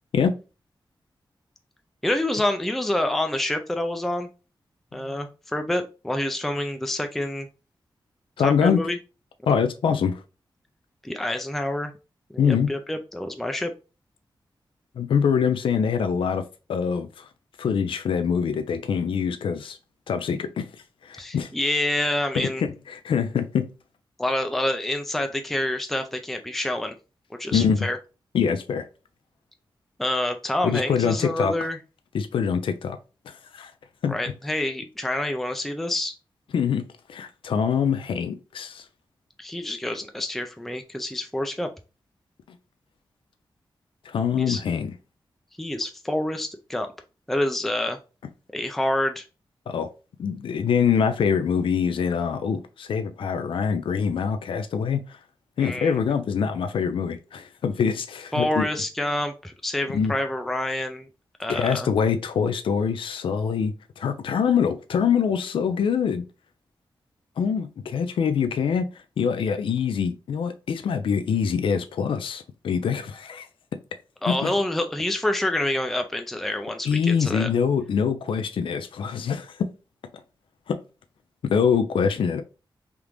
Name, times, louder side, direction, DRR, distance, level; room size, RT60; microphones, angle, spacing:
voice 1, 2.0-4.3 4.9-7.5 8.4-9.0 11.0-11.9 12.3-13.7 21.2-22.6 24.2-26.9 27.4-28.0 30.0-31.8 34.1-36.1 39.4-41.7 44.4-44.6 45.6-46.9 47.3-48.0 48.5-49.3 55.6-56.0 58.3-61.1 61.4-61.9 74.2-77.5, left 1 dB, 5° left, 0.3 m, -27 dB
voice 2, 8.4-8.8 9.5-10.2 12.4-12.7 15.0-16.4 16.7-17.3 17.6-19.8 20.1-20.7 21.0-21.5 22.3-23.7 27.5-27.8 28.3-28.9 30.6-31.5 32.1-33.0 33.3-33.7 34.0-34.2 36.5-38.8 44.1-44.9 49.7-49.9 50.2-55.2 55.6-58.7 59.9-60.1 61.5-66.2 67.4-68.9 69.2-73.5 74.3-74.5 76.9-79.6 80.7-80.8 81.4-82.4, left 6 dB, 90° left, 0.4 m, -24 dB
3.4 x 2.4 x 2.9 m
wide cardioid pair, 100°, 9 cm